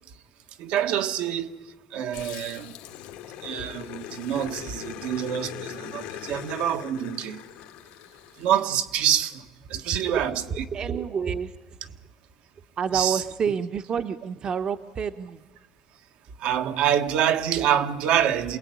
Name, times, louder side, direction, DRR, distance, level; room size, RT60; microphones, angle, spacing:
voice 1, 0.6-1.5 1.9-2.7 3.4-7.4 8.4-10.6 12.9-13.2 16.4-18.6, right 10 dB, 75° right, 1.8 m, -26 dB
Growling, 2.1-8.8, left 11 dB, 90° left, 2.1 m, -40 dB
voice 2, 10.5-11.6 11.8-12.0 12.8-15.4, right 6 dB, 45° right, 1.1 m, -28 dB
28.0 x 20.5 x 9.6 m
cardioid pair, 110°, 2 cm